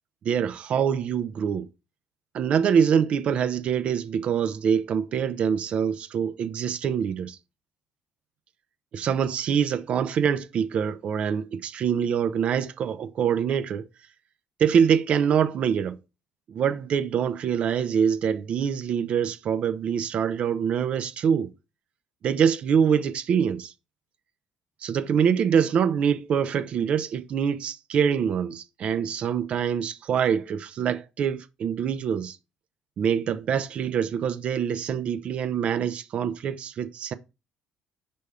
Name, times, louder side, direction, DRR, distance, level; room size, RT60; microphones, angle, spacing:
voice 1, 0.2-1.7 2.3-7.4 8.9-13.9 14.6-16.0 16.5-21.5 22.2-23.7 24.8-32.4 33.0-37.1, right 7 dB, 55° right, 0.6 m, -25 dB
5.3 x 3.5 x 5.5 m
cardioid pair, 95°, 2 cm